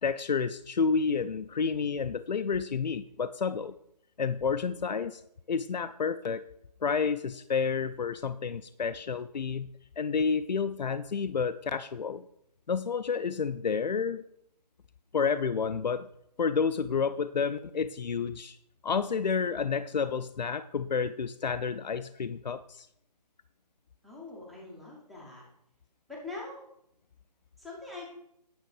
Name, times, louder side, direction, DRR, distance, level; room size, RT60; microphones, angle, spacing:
voice 1, 0.0-3.7 4.2-5.2 5.5-6.4 6.8-9.7 10.0-12.2 12.7-14.2 15.1-16.1 16.4-18.6 18.8-22.9, left 5 dB, 85° left, 12 dB, 0.5 m, -30 dB
voice 2, 24.0-25.5 26.1-26.6 27.6-28.0, left 3 dB, ahead, -4 dB, 0.5 m, -43 dB
9.3 x 6.2 x 4.7 m, 0.76 s
figure-of-eight pair, 155°, 21 cm